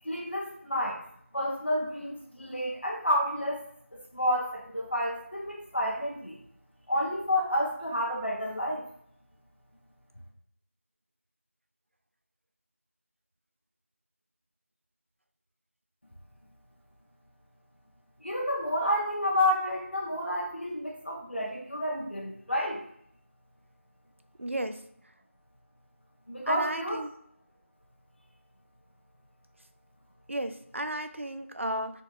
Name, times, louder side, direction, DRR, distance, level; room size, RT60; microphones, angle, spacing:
voice 1, 0.0-1.0 1.3-3.6 4.1-6.4 6.9-8.9 18.2-22.8 26.3-27.0, equal, 55° left, -2 dB, 1.2 m, -30 dB
voice 2, 24.4-24.7 26.5-27.1 30.3-31.9, right 1 dB, 65° right, 9 dB, 0.4 m, -33 dB
4.2 x 2.4 x 3.2 m, 0.68 s
figure-of-eight pair, 180°, 7 cm